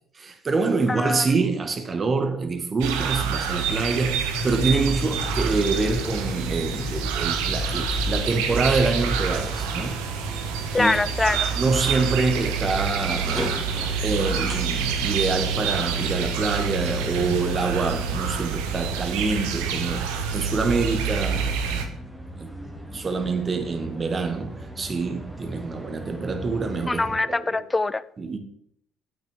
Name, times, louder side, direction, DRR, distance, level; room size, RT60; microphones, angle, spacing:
voice 1, 0.1-10.0 10.8-10.9 11.5-13.5 14.0-22.0 22.4-22.5 22.9-27.6 28.2-28.4, right 4 dB, 35° right, 1.6 m, -26 dB
voice 2, 0.9-1.3 10.7-11.4 26.9-28.0, left 3 dB, 20° left, 0.5 m, -23 dB
sound 1, 2.8-21.9, right 6 dB, 85° right, 1.0 m, -27 dB
sound 2, 4.3-10.3, left 1 dB, 40° left, 1.0 m, -31 dB
sound 3, 9.1-27.2, equal, 5° right, 2.0 m, -40 dB
9.2 x 8.0 x 3.6 m
hypercardioid pair, 65°, 0 cm